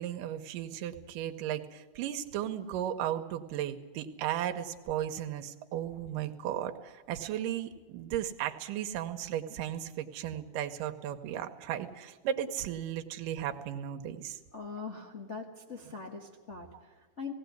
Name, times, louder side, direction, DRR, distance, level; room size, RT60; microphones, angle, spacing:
voice 1, 0.0-14.4 16.7-16.8, right 11 dB, 80° right, 6 dB, 2.6 m, -35 dB
voice 2, 14.5-16.7 17.0-17.3, left 5 dB, 75° left, -1 dB, 0.6 m, -41 dB
18.0 x 17.0 x 9.4 m, 1.2 s
omnidirectional pair, 3.9 m